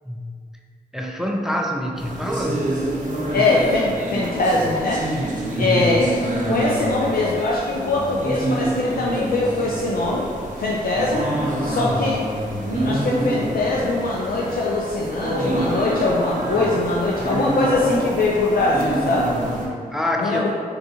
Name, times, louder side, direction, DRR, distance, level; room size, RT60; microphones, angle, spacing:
voice 1, 0.9-2.7 5.5-5.8 11.7-12.1 19.9-20.5, equal, ahead, 1 dB, 0.4 m, -26 dB
sound 1, 2.0-19.7, right 1 dB, 50° right, 0.8 m, -26 dB
voice 2, 3.3-5.0 5.6-6.0 6.4-10.3 10.6-11.3 11.6-12.2 12.7-19.3 20.2-20.5, left 2 dB, 60° left, -4 dB, 0.4 m, -22 dB
3.8 x 2.3 x 2.8 m, 2.1 s
supercardioid pair, 40°, 17 cm